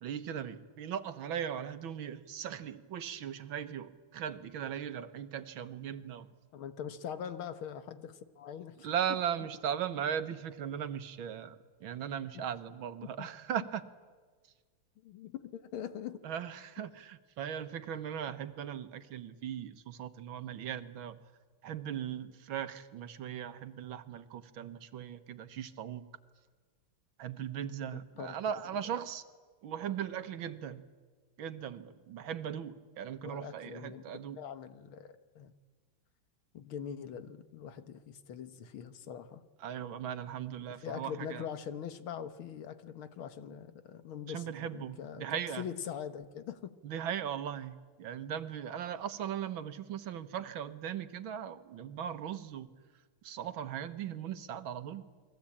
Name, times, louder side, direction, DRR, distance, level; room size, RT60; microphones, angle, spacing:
voice 1, 0.0-6.3 8.8-13.8 16.2-21.2 21.6-26.1 27.2-29.2 29.6-30.8 31.4-34.4 39.6-41.5 44.3-45.7 46.8-52.7 53.2-55.1, right 9 dB, 75° right, 11 dB, 1.9 m, -38 dB
voice 2, 6.5-8.9 12.3-12.5 13.2-13.3 15.0-16.2 27.9-28.4 33.2-35.5 36.5-39.5 40.8-45.3 45.6-46.8, left 8 dB, 85° left, 11 dB, 2.1 m, -43 dB
29.5 x 21.5 x 8.6 m, 1.5 s
omnidirectional pair, 2.2 m